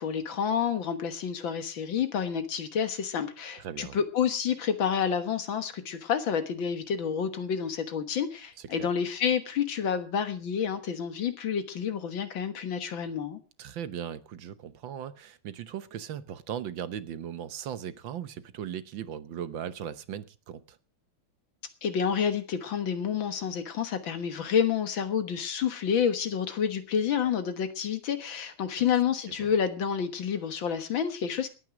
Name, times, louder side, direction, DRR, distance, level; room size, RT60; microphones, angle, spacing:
voice 1, 0.0-13.4 21.8-31.5, left 7 dB, 65° left, 2.1 m, -29 dB
voice 2, 3.6-4.0 8.6-8.9 13.6-20.8 29.4-29.5, right 9 dB, 70° right, 1.6 m, -38 dB
20.0 x 9.3 x 4.9 m
omnidirectional pair, 2.3 m